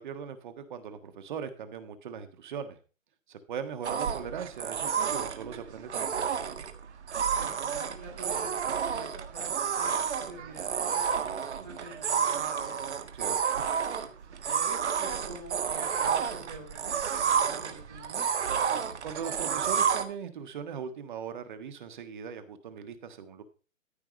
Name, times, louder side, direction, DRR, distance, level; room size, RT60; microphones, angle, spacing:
voice 1, 0.0-2.8 3.3-6.2 13.1-13.6 19.0-23.4, right 7 dB, 40° right, 9 dB, 1.5 m, -39 dB
sound 1, 3.8-20.0, right 7 dB, 60° right, 1.7 m, -30 dB
voice 2, 7.3-13.4 14.5-18.3, right 2 dB, 5° right, -2 dB, 0.5 m, -47 dB
14.0 x 4.9 x 6.2 m, 0.36 s
hypercardioid pair, 160°, 39 cm